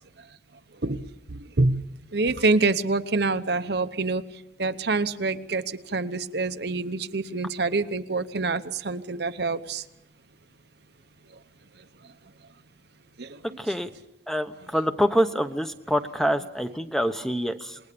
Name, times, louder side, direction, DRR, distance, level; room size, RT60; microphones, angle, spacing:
voice 1, 1.3-1.8 2.1-4.2 4.6-5.6 5.9-9.8 13.2-13.3, right 3 dB, 60° right, 10 dB, 1.0 m, -26 dB
voice 2, 13.6-13.9 14.3-17.8, equal, ahead, 8 dB, 1.0 m, -26 dB
27.5 x 20.5 x 6.9 m, 0.87 s
head